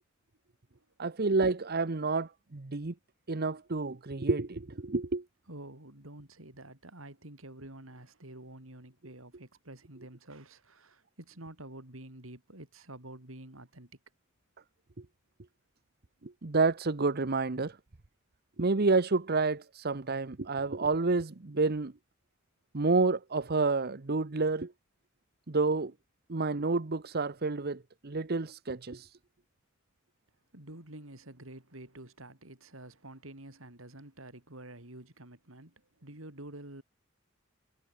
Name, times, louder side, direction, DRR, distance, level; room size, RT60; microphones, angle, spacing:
voice 1, 1.0-2.9 3.3-5.2 16.2-17.8 18.6-21.9 22.7-24.7 25.5-25.9 26.3-29.1, right 3 dB, 50° right, 1.0 m, -29 dB
voice 2, 5.5-13.9 30.5-36.8, right 1 dB, 75° right, 4.8 m, -48 dB
head